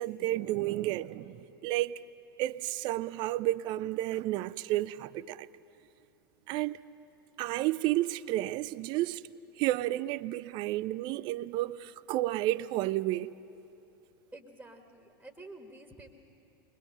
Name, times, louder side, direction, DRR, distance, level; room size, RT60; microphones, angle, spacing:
voice 1, 0.0-2.0 2.4-5.5 6.5-6.8 7.4-9.2 9.6-13.3, right 15 dB, 40° right, 0.5 m, -31 dB
voice 2, 14.3-16.1, right 2 dB, 5° right, 1.7 m, -49 dB
22.0 x 22.0 x 6.7 m
figure-of-eight pair, 90°, 12 cm